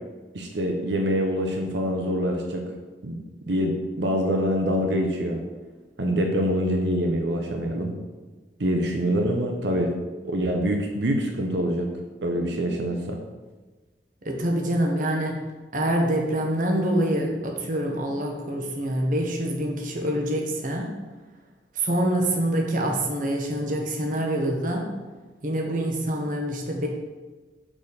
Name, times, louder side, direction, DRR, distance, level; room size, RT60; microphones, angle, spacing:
voice 1, 0.3-2.7 3.0-3.2 3.5-5.4 6.0-7.9 8.6-9.9 10.2-11.9 12.2-13.2, equal, 85° right, 3 dB, 0.9 m, -25 dB
voice 2, 14.2-15.3 15.7-20.9 21.8-24.9 25.4-26.9, right 1 dB, 50° right, 1 dB, 1.2 m, -25 dB
6.2 x 4.4 x 6.5 m, 1.3 s
head